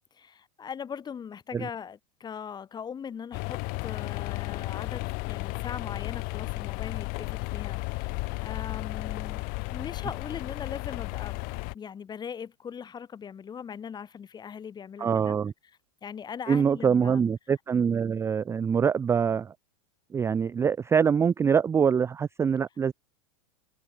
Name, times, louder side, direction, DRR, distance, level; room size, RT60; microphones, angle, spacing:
voice 1, 0.0-11.4 11.7-15.4 16.0-17.2, left 7 dB, 20° left, 1.9 m, -40 dB
sound 1, 3.3-11.7, left 29 dB, 50° left, 1.1 m, -34 dB
voice 2, 15.0-15.5 16.5-19.5 20.1-22.9, right 7 dB, 15° right, 0.4 m, -24 dB
hypercardioid pair, 115°, 19 cm